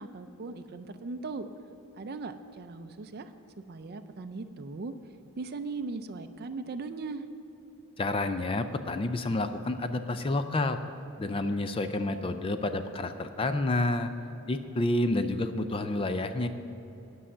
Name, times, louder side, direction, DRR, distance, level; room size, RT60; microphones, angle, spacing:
voice 1, 0.0-1.5 2.0-3.3 3.7-4.9 5.4-7.2, right 3 dB, 45° right, 8 dB, 0.4 m, -38 dB
voice 2, 8.0-10.8 11.2-14.1 14.5-16.5, left 2 dB, 25° left, 9 dB, 0.4 m, -29 dB
10.0 x 5.6 x 8.5 m, 3.0 s
head